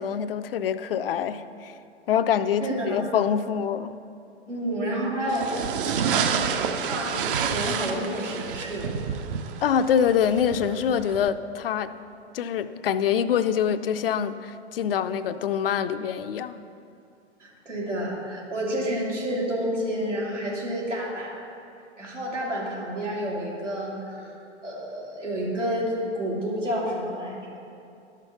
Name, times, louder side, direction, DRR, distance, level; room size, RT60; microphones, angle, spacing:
voice 1, 0.0-1.7 2.1-4.0 9.6-11.9 12.3-16.6, left 8 dB, 55° left, 12 dB, 0.5 m, -25 dB
voice 2, 2.6-3.0 4.5-8.9 17.4-21.4 22.0-24.3 24.6-27.6, equal, 85° right, -5 dB, 2.7 m, -30 dB
sound 1, 5.3-11.3, right 7 dB, 50° right, 0.7 m, -29 dB
13.0 x 5.9 x 5.8 m, 2.6 s
figure-of-eight pair, 105°, 35 cm